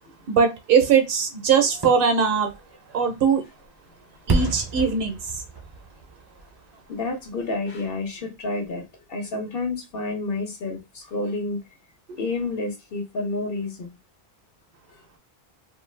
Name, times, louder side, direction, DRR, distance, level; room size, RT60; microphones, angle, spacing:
voice 1, 0.3-2.5 2.9-3.4 4.3-5.2, right 6 dB, 65° right, 0.8 m, -20 dB
Fireworks, 1.7-7.5 7.9-8.0, right 4 dB, 35° right, 0.5 m, -32 dB
voice 2, 6.9-11.6 12.2-14.0, left 3 dB, 65° left, 1.0 m, -29 dB
2.5 x 2.3 x 3.1 m
omnidirectional pair, 1.0 m